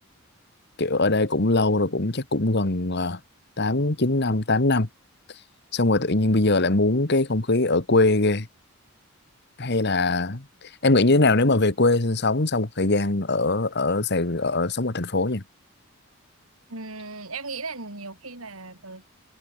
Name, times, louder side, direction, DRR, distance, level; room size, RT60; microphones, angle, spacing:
voice 1, 0.8-3.2 3.6-4.9 5.7-8.5 9.6-10.4 10.8-15.4, left 2 dB, 55° left, 1.7 m, -22 dB
voice 2, 16.7-19.0, right 3 dB, 85° right, 7.5 m, -37 dB
head